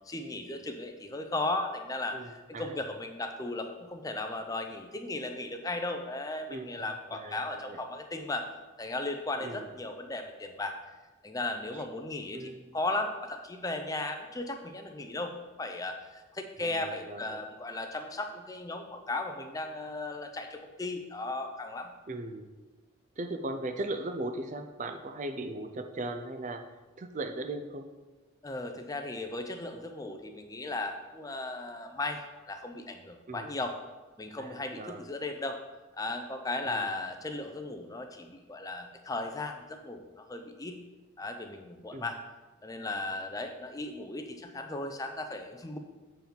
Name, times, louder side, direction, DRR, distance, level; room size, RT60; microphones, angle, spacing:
voice 1, 0.0-8.5 8.8-10.8 11.2-21.9 28.4-33.7 34.2-35.6 35.9-40.8 41.2-42.2 42.6-45.8, left 2 dB, 15° left, 6 dB, 0.5 m, -36 dB
voice 2, 2.1-2.8 6.5-6.9 7.1-7.8 9.4-9.7 11.7-11.8 12.3-12.6 16.6-17.4 22.1-22.5 23.2-26.6 27.0-27.9 33.3-33.5 34.4-35.0 36.6-36.8 41.9-42.1, right 2 dB, 35° right, 7 dB, 0.5 m, -38 dB
7.6 x 4.7 x 5.2 m, 1.2 s
head